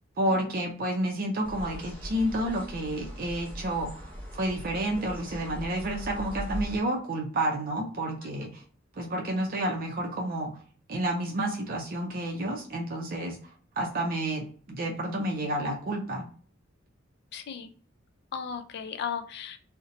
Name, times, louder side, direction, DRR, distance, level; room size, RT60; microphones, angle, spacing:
voice 1, 0.2-8.6 9.0-10.5 10.9-13.4 13.8-16.3, right 1 dB, 45° right, 1 dB, 0.5 m, -30 dB
sound 1, 1.4-6.8, equal, 10° left, 0.9 m, -40 dB
voice 2, 17.3-17.7 18.3-19.6, left 7 dB, 55° left, 8 dB, 0.4 m, -36 dB
2.7 x 2.1 x 3.8 m, 0.44 s
head